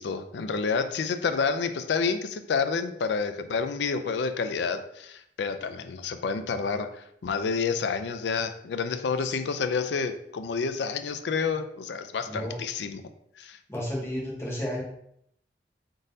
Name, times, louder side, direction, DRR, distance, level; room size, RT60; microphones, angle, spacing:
voice 1, 0.0-13.0 13.4-13.6, left 5 dB, 75° left, 8 dB, 0.4 m, -29 dB
voice 2, 12.3-12.6 13.7-14.8, equal, 15° left, -4 dB, 1.1 m, -32 dB
3.8 x 3.7 x 2.7 m, 0.72 s
head